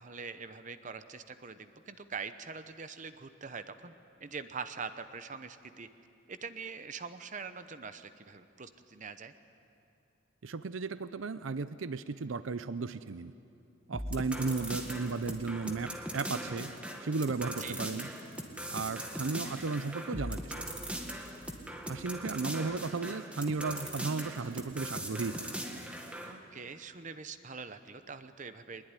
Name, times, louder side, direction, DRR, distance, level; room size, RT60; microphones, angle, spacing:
voice 1, 0.0-3.9 4.2-5.9 6.3-9.3 17.6-17.8 26.3-28.9, right 5 dB, 40° right, 10 dB, 0.9 m, -43 dB
voice 2, 10.4-13.3 13.9-16.7 17.0-18.1 18.7-20.6 21.9-25.5, right 4 dB, 80° right, 13 dB, 0.6 m, -35 dB
sound 1, 13.9-26.3, right 1 dB, 5° right, 1.8 m, -40 dB
22.5 x 20.5 x 9.8 m, 2.6 s
head